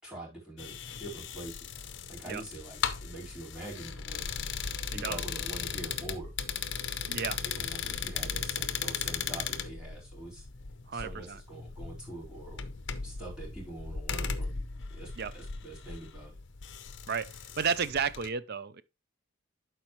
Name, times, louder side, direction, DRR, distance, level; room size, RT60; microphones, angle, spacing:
voice 1, 0.0-1.6 2.1-4.3 4.9-6.3 7.0-10.4 10.9-12.6 13.0-16.3, right 2 dB, 5° right, 4.3 m, -44 dB
sound 1, 0.6-18.3, left 6 dB, 60° left, 0.7 m, -37 dB
voice 2, 7.1-7.4 10.9-11.4 15.2-15.3 17.1-18.8, right 6 dB, 55° right, 0.5 m, -32 dB
11.5 x 4.6 x 3.1 m
head